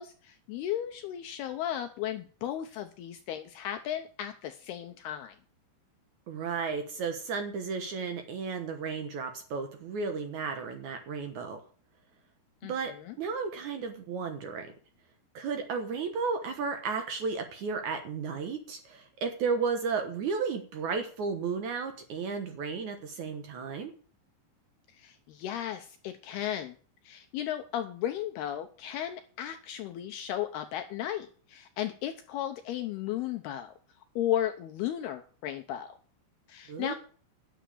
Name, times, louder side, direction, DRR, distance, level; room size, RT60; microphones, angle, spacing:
voice 1, 0.0-5.4 12.6-13.2 24.9-26.8 27.0-33.7 34.2-36.0 36.5-36.9, left 11 dB, 80° left, 7 dB, 2.3 m, -35 dB
voice 2, 6.3-11.6 12.7-14.7 15.3-23.9 36.7-36.9, right 5 dB, 80° right, 7 dB, 1.7 m, -33 dB
10.5 x 7.7 x 8.5 m, 0.42 s
omnidirectional pair, 5.5 m